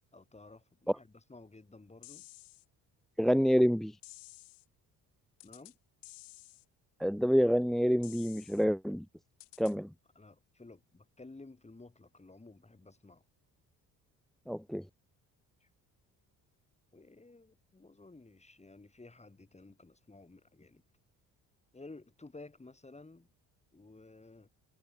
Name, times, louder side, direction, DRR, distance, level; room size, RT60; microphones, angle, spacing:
voice 1, 0.1-2.3 5.4-5.8 10.2-13.2 15.6-15.7 16.9-20.8 21.7-23.3 23.7-24.5, left 3 dB, 15° left, 3.6 m, -54 dB
sound 1, 2.0-2.6 4.0-4.6 5.4-5.7 6.0-6.6 8.0-8.6 9.4-9.7, left 20 dB, 85° left, 7.0 m, -53 dB
voice 2, 3.2-4.0 7.0-9.1 9.6-9.9 14.5-14.9, equal, ahead, 0.5 m, -27 dB
supercardioid pair, 75°, 40 cm